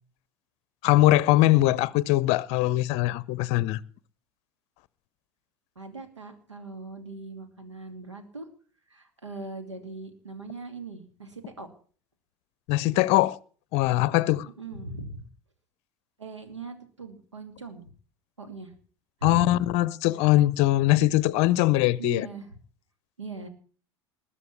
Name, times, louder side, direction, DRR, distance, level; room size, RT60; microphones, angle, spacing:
voice 1, 0.8-3.8 12.7-13.4 13.7-14.5 19.2-22.3, left 16 dB, 45° left, 0.7 m, -22 dB
voice 2, 5.8-8.5 8.9-11.7 14.4-15.2 16.2-17.9 18.4-18.7 19.2-19.5 22.0-22.5 23.2-23.5, right 3 dB, 80° right, 2.6 m, -40 dB
20.5 x 7.0 x 8.6 m
figure-of-eight pair, 75°, 15 cm